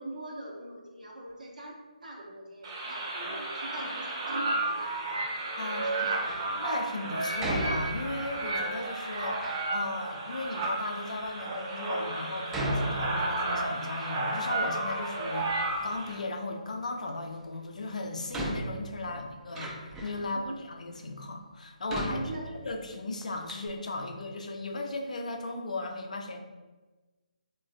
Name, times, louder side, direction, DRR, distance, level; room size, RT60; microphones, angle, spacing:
voice 1, 0.0-5.3 5.6-6.5 19.0-19.2 20.2-20.6 22.0-22.6, right 1 dB, 70° right, -2 dB, 0.7 m, -42 dB
sound 1, 2.6-16.2, right 2 dB, 35° right, 0.7 m, -33 dB
voice 2, 5.6-6.2 6.6-22.2 22.6-26.4, left 2 dB, 60° left, 3 dB, 0.4 m, -36 dB
Door, 6.0-6.5 7.4-8.4 9.0-9.7 10.4-10.5 11.2-11.3 12.5-13.6 14.0-15.1 15.3-16.2 17.5-17.6 18.3-20.3 20.9-21.0 21.9-22.9 23.2-23.3 23.5-23.7, right 1 dB, 10° right, 0.3 m, -36 dB
3.1 x 2.2 x 2.5 m, 1.2 s
figure-of-eight pair, 145°, 4 cm